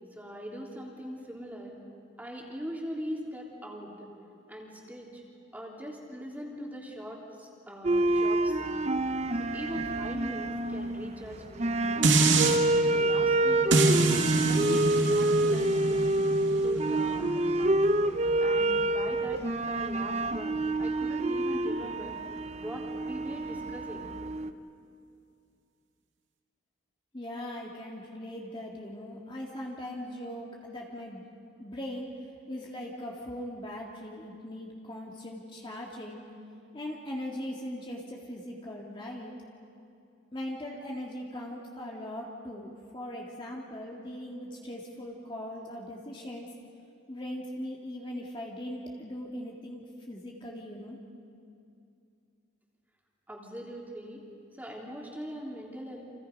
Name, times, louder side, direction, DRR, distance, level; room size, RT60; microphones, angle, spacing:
voice 1, 0.1-1.7 2.2-4.1 4.5-5.2 5.5-8.9 9.4-12.4 12.8-13.7 14.5-17.9 18.4-22.2 22.5-24.1 53.3-54.2 54.6-56.0, equal, 10° right, -2 dB, 3.3 m, -41 dB
sound 1, 7.8-24.5, right 2 dB, 35° right, 0.7 m, -27 dB
sound 2, 12.0-12.6 13.7-18.9 19.3-19.4, right 3 dB, 75° right, 2.3 m, -27 dB
voice 2, 27.1-31.2 31.6-32.1 32.5-36.2 36.7-39.3 40.3-46.5 47.1-51.0, left 1 dB, 25° left, -2 dB, 2.1 m, -40 dB
29.5 x 27.0 x 5.3 m, 2.5 s
head